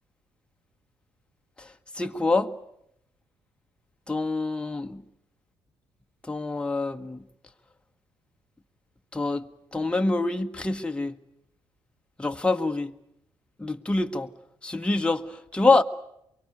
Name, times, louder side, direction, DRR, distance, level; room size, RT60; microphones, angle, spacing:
voice 1, 1.9-2.5 4.1-5.0 6.3-7.2 9.1-9.5 9.7-11.2 12.2-12.9 13.6-14.3 14.6-15.8, left 3 dB, 10° left, 1.3 m, -25 dB
24.0 x 23.0 x 9.5 m
hypercardioid pair, 55°, 10 cm